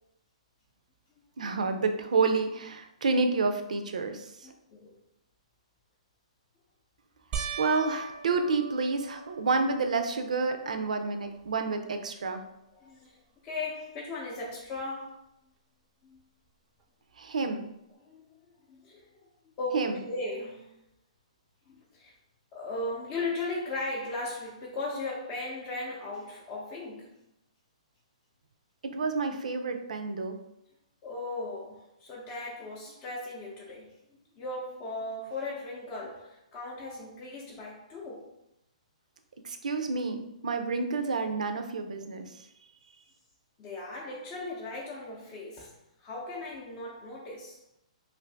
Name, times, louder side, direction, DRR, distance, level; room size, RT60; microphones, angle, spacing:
voice 1, 1.4-4.5 7.6-12.4 17.2-17.6 19.7-20.0 28.8-30.4 39.4-42.5, right 4 dB, 85° right, 6 dB, 0.4 m, -29 dB
voice 2, 4.4-5.0 12.7-13.2 13.4-15.2 16.0-16.2 18.0-18.3 18.7-19.1 19.4-20.7 21.7-22.1 22.5-27.2 31.0-38.3 43.6-47.6, left 2 dB, 25° left, -4 dB, 0.5 m, -37 dB
sound 1, 7.3-9.9 10.5-11.1 11.4-11.5 14.8-14.9, right 6 dB, 20° right, 0.4 m, -39 dB
2.6 x 2.5 x 3.3 m, 0.83 s
hypercardioid pair, 150°, 4 cm